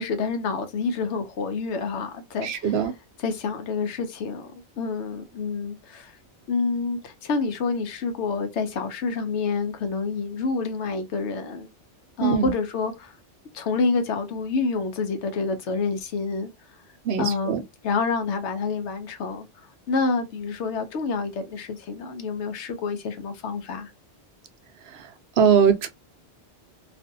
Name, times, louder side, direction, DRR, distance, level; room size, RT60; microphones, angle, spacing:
voice 1, 0.0-2.9 3.2-4.5 4.8-6.1 6.5-11.7 12.2-13.1 13.5-16.5 17.2-17.6 17.8-19.5 19.9-23.9, left 4 dB, 80° left, 1.0 m, -28 dB
voice 2, 2.4-2.9 12.2-12.5 17.1-17.6 25.4-25.9, right 7 dB, 70° right, 0.8 m, -21 dB
2.5 x 2.4 x 2.5 m
omnidirectional pair, 1.2 m